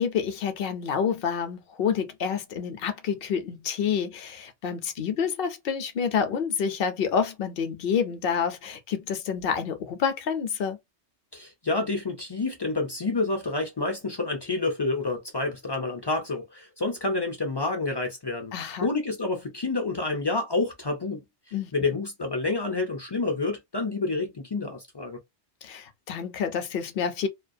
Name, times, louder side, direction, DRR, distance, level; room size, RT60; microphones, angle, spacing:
voice 1, 0.0-10.8 18.5-18.9 21.5-21.7 25.6-27.3, left 7 dB, 60° left, 0.7 m, -28 dB
voice 2, 11.3-18.5 18.8-21.2 21.7-25.2, left 3 dB, 40° left, 0.3 m, -28 dB
2.3 x 2.2 x 2.5 m
omnidirectional pair, 1.2 m